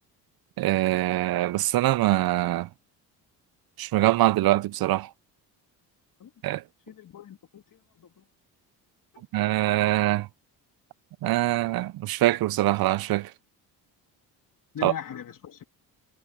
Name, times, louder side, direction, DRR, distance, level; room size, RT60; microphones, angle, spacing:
voice 1, 0.6-2.7 3.8-5.1 6.4-6.6 9.3-10.3 11.2-13.3 14.8-14.9, right 16 dB, 60° right, 0.6 m, -23 dB
voice 2, 6.9-8.2 9.1-9.2 14.7-15.6, left 9 dB, 50° left, 3.1 m, -40 dB
cardioid pair, 85°, 40 cm